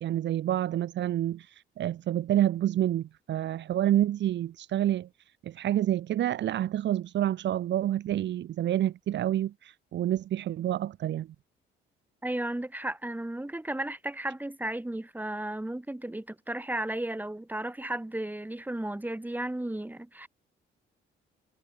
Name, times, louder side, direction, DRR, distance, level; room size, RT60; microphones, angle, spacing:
voice 1, 0.0-5.1 5.4-11.3, right 12 dB, 65° right, 0.8 m, -28 dB
voice 2, 12.2-20.3, right 1 dB, 10° right, 4.8 m, -34 dB
cardioid pair, 90°, 20 cm